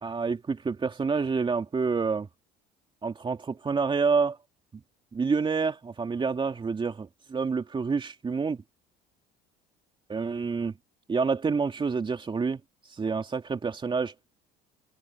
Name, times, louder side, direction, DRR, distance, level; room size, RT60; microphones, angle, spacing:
voice 1, 0.0-2.3 3.0-4.4 4.7-4.8 5.1-8.6 10.1-10.7 11.1-14.1, right 5 dB, 25° right, 2.7 m, -28 dB
open air
supercardioid pair, 85°, 19 cm